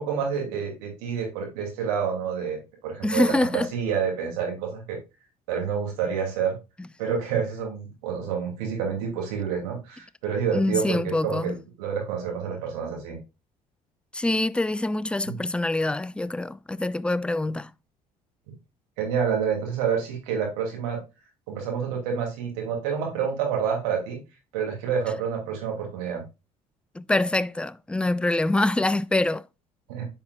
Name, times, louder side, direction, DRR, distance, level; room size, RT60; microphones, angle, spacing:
voice 1, 0.0-5.0 5.5-6.6 7.0-13.2 15.3-15.4 19.0-21.0 21.5-24.2 24.5-26.2 29.9-30.0, right 7 dB, 70° right, 2.8 m, -28 dB
voice 2, 3.0-3.7 10.5-11.6 14.1-17.7 26.9-29.5, left 2 dB, 5° left, 0.3 m, -25 dB
9.6 x 5.5 x 2.4 m
figure-of-eight pair, 55°, 20 cm